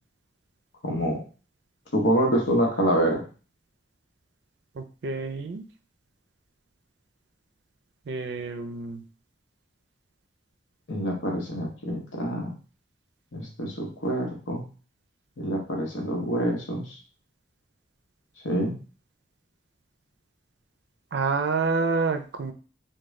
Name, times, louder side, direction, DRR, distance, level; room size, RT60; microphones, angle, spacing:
voice 1, 0.8-1.2 1.9-3.2 10.9-12.5 13.3-14.6 15.4-17.0 18.4-18.8, equal, 90° left, 1 dB, 1.0 m, -26 dB
voice 2, 4.8-5.6 8.1-9.0 21.1-22.5, right 4 dB, 60° right, 7 dB, 0.4 m, -28 dB
3.5 x 2.2 x 3.1 m, 0.36 s
head